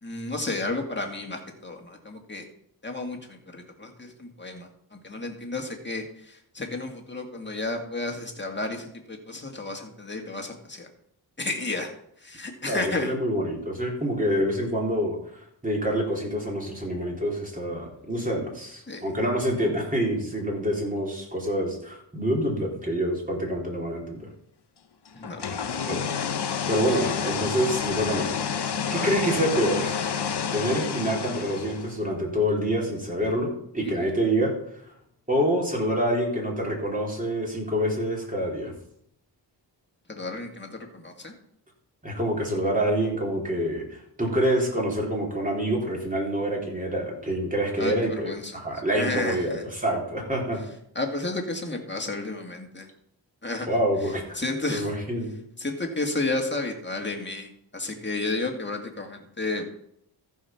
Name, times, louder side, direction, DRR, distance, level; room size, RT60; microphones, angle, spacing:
voice 1, 0.0-2.5 2.8-10.9 11.4-11.9 12.2-13.1 18.9-19.1 25.1-25.8 28.9-29.2 33.8-34.1 40.1-41.3 47.8-48.6 48.9-49.6 50.9-52.9 53.4-53.7 54.0-54.9 55.6-59.7, left 2 dB, 25° left, 2 dB, 2.1 m, -32 dB
voice 2, 12.7-24.3 25.9-26.0 26.7-30.1 30.5-34.5 35.3-38.7 42.0-48.3 48.6-50.6 53.7-54.4 54.7-55.3, equal, 20° right, -2 dB, 3.6 m, -27 dB
sound 1, 25.2-32.0, left 7 dB, 65° left, 0.9 m, -29 dB
14.0 x 5.6 x 5.8 m, 0.70 s
wide cardioid pair, 75°, 43 cm